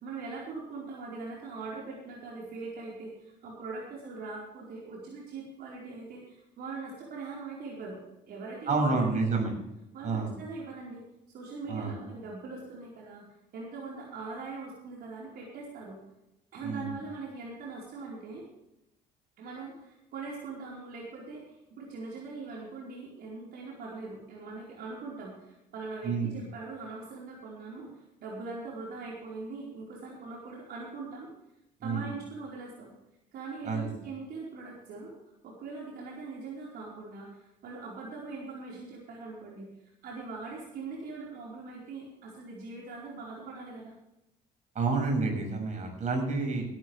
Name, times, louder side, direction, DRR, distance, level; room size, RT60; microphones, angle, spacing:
voice 1, 0.0-8.0 8.3-9.4 9.9-11.0 11.3-13.2 13.5-16.0 16.5-18.5 19.4-31.3 31.8-32.9 33.3-35.2 35.4-39.7 40.0-43.9, right 3 dB, 70° right, -3 dB, 4.6 m, -41 dB
voice 2, 8.7-9.5 10.0-10.3 11.7-11.9 16.6-16.9 26.0-26.4 31.8-32.1 33.6-33.9 44.7-46.6, right 3 dB, 45° right, 2 dB, 6.4 m, -29 dB
18.0 x 12.5 x 3.4 m, 0.87 s
cardioid pair, 110°, 17 cm